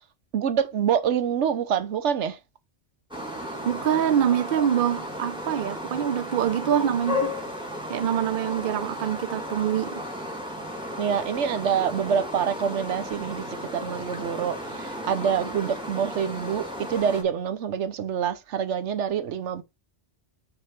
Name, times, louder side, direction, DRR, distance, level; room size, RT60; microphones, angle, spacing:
voice 1, 0.3-2.4 11.0-13.5 13.7-19.6, right 8 dB, 80° right, 1.0 m, -26 dB
sound 1, 3.1-17.2, left 1 dB, 5° right, 1.3 m, -34 dB
voice 2, 3.7-7.3 7.9-10.0 15.6-15.7, right 9 dB, 60° right, 0.6 m, -25 dB
6.2 x 3.0 x 5.7 m
omnidirectional pair, 1.2 m